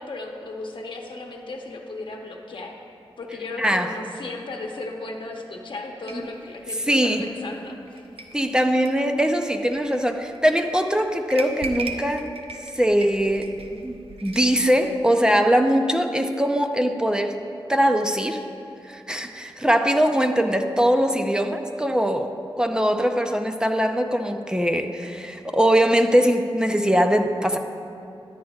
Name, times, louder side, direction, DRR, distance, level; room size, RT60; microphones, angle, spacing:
voice 1, 0.0-2.8 3.2-8.1, left 2 dB, 60° left, 1 dB, 0.9 m, -35 dB
voice 2, 3.6-3.9 6.1-6.2 6.9-7.2 8.3-12.3 12.7-13.5 13.8-17.3 17.7-18.4 18.9-22.3 22.6-27.6, equal, 10° right, 5 dB, 0.5 m, -21 dB
sound 1, 6.1-14.7, right 3 dB, 75° right, 0.6 m, -39 dB
13.0 x 9.7 x 2.4 m, 2.7 s
wide cardioid pair, 80°, 10 cm